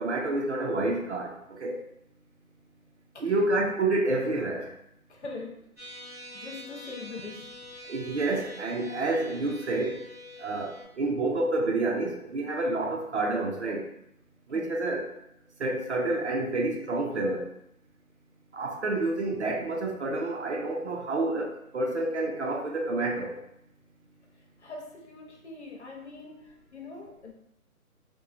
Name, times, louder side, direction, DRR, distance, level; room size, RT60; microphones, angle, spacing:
voice 1, 0.0-1.8 3.2-4.7 7.9-10.0 10.4-13.9 14.5-15.1 15.6-17.5 18.5-23.4, right 2 dB, 50° right, 0 dB, 0.5 m, -29 dB
voice 2, 5.1-5.7 6.3-7.5 14.5-14.7 24.6-27.3, left 3 dB, 50° left, 0 dB, 0.5 m, -42 dB
sound 1, 5.8-10.8, left 1 dB, 10° right, 1.1 m, -45 dB
2.8 x 2.2 x 2.5 m, 0.78 s
hypercardioid pair, 165°, 44 cm